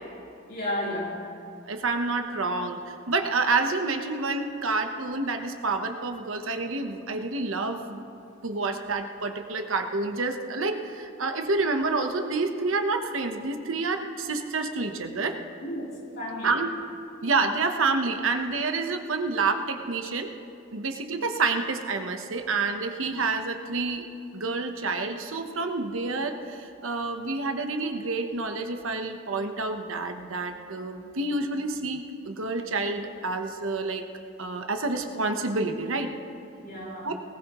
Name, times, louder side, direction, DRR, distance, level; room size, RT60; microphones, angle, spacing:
voice 1, 0.5-1.2 15.6-16.5 36.6-37.1, left 1 dB, 55° left, -5 dB, 3.8 m, -33 dB
voice 2, 1.6-8.0 8.4-15.4 16.4-16.7 17.2-20.3 20.7-24.0 24.3-34.1 34.4-36.1 37.0-37.1, right 3 dB, 85° right, 6 dB, 1.1 m, -28 dB
19.0 x 18.0 x 3.1 m, 2.5 s
head